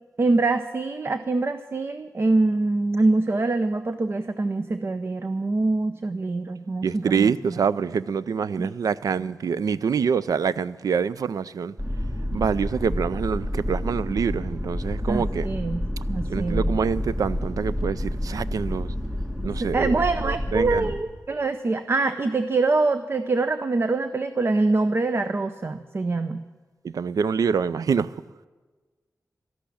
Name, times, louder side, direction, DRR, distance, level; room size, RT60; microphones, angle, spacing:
voice 1, 0.2-7.6 8.6-8.7 15.1-15.8 16.1-16.7 19.6-26.4, right 3 dB, 40° right, 0.6 m, -24 dB
voice 2, 6.8-11.7 12.3-15.5 16.3-18.9 19.4-20.0 20.2-20.9 26.8-28.1, right 6 dB, 90° right, 0.4 m, -25 dB
sound 1, 11.8-21.0, left 1 dB, 15° right, 1.8 m, -29 dB
13.0 x 11.5 x 8.5 m
wide cardioid pair, 115°, 6 cm